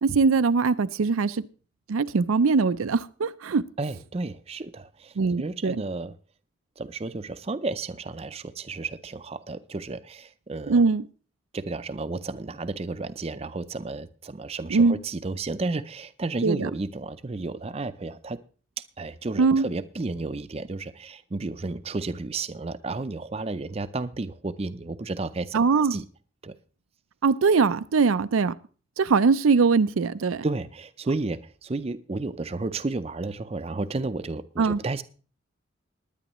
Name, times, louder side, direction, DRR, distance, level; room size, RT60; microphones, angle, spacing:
voice 1, 0.0-1.5 1.9-3.6 5.2-5.8 10.7-11.0 14.7-15.0 16.4-16.7 19.4-19.7 25.5-26.0 27.2-28.5 29.0-30.4 34.6-34.8, right 4 dB, 90° right, 0.5 m, -21 dB
voice 2, 3.8-6.1 6.8-10.8 11.5-18.4 18.8-25.6 25.9-26.0 26.4-26.5 30.4-35.0, right 3 dB, 30° right, 0.5 m, -32 dB
19.5 x 10.0 x 3.0 m
head